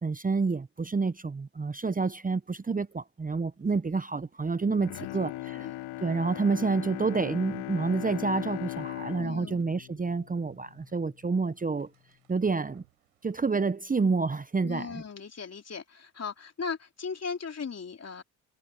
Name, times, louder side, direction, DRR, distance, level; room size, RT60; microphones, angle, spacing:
voice 1, 0.0-5.7 6.0-11.9 12.3-12.8 13.2-15.0, right 4 dB, 20° right, 1.0 m, -29 dB
sound 1, 1.6-1.9 2.1-2.2 2.6-5.1 5.4-6.4 7.0-7.2 7.8-13.9, right 27 dB, 90° right, 7.6 m, -68 dB
Bowed string instrument, 4.7-11.0 11.4-11.5, left 17 dB, 75° left, 1.2 m, -39 dB
voice 2, 5.0-5.8 9.2-9.6 14.6-18.2, left 5 dB, 40° left, 3.5 m, -38 dB
hypercardioid pair, 55°, 40 cm